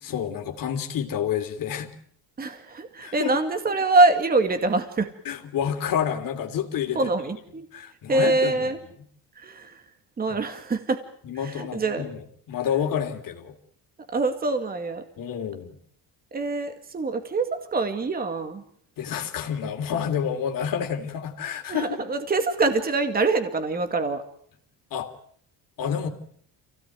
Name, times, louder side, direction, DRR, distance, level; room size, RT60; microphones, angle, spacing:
voice 1, 0.0-1.9 3.0-3.3 5.2-7.1 7.7-8.6 11.2-12.2 12.5-13.5 15.2-15.8 19.0-21.9 24.9-25.1 25.8-26.1, left 8 dB, 50° left, 4 dB, 3.3 m, -29 dB
voice 2, 2.4-5.1 6.9-7.7 8.1-8.8 9.4-9.8 10.2-11.0 11.3-12.0 14.1-15.0 16.3-18.6 21.7-24.2, right 3 dB, 20° right, 7 dB, 2.1 m, -24 dB
28.0 x 17.5 x 9.4 m, 0.64 s
cardioid pair, 165°, 42 cm